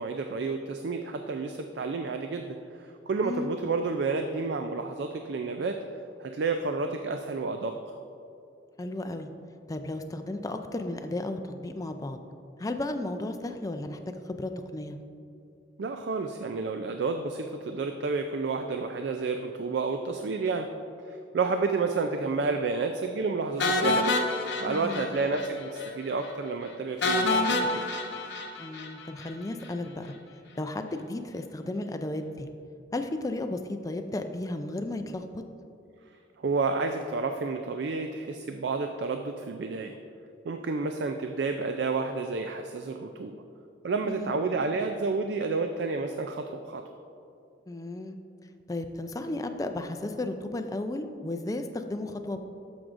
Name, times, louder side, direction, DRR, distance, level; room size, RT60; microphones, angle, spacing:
voice 1, 0.0-5.8 6.2-7.7 15.8-20.7 21.1-24.2 24.6-27.9 36.4-40.0 40.4-43.4 43.8-46.8, right 4 dB, 60° right, 6 dB, 0.4 m, -30 dB
voice 2, 8.8-9.3 9.7-12.2 12.6-14.0 14.3-15.0 24.7-25.1 28.6-30.1 30.6-32.5 32.9-35.4 44.0-44.3 47.7-48.2 48.7-52.4, left 2 dB, 20° left, 7 dB, 0.4 m, -34 dB
sound 1, 23.6-25.5 25.8-25.9 26.2-26.3 27.0-29.3, left 2 dB, 65° left, 0.7 m, -27 dB
13.0 x 6.1 x 2.5 m, 2.6 s
head